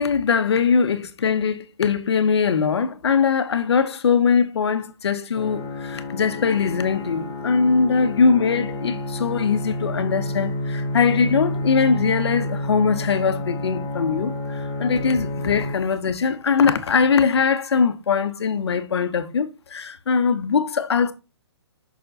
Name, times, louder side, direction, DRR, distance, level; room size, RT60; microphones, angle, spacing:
voice 1, 0.0-21.1, left 5 dB, 65° left, 1.1 m, -21 dB
sound 1, 5.3-15.7, left 1 dB, 25° left, 1.8 m, -29 dB
6.2 x 5.6 x 5.5 m
hypercardioid pair, 140°, 15 cm